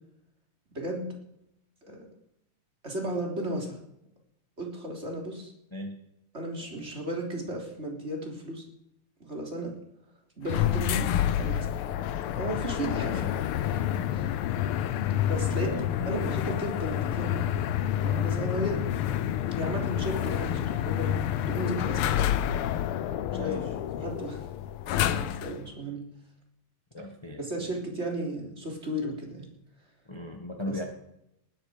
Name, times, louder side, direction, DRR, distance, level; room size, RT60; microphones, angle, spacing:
voice 1, 0.7-1.1 1.9-2.1 2.8-3.8 4.6-5.5 6.3-8.6 9.2-9.7 10.4-11.1 11.4-11.7 12.3-13.2 14.1-14.3 15.3-17.4 18.0-18.8 19.6-22.5 23.3-23.6 24.0-24.4 24.9-26.0 27.4-29.5 30.7-30.8, right 1 dB, 20° right, 0 dB, 3.5 m, -34 dB
sound 1, 10.5-25.6, left 11 dB, 80° left, 1.3 m, -28 dB
voice 2, 13.0-13.4 15.6-16.2 23.3-23.7 26.9-27.7 30.1-30.8, left 1 dB, 15° left, 3 dB, 0.9 m, -38 dB
19.5 x 13.0 x 5.2 m, 0.79 s
omnidirectional pair, 3.3 m